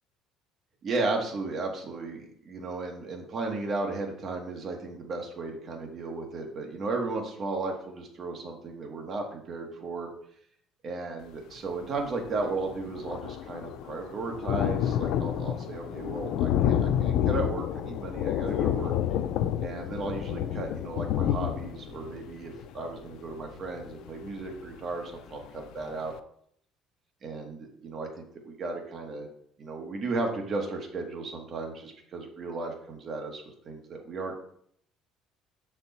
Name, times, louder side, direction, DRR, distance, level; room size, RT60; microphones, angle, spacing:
voice 1, 0.8-10.1 10.8-18.9 19.6-26.1 27.2-29.3 29.6-34.4, right 3 dB, 35° right, 2 dB, 1.2 m, -35 dB
Thunder, 12.0-12.1 12.3-24.9 25.4-25.5 25.8-25.9, left 10 dB, 65° left, 0.4 m, -29 dB
6.5 x 4.4 x 4.1 m, 0.66 s
cardioid pair, 160°, 0 cm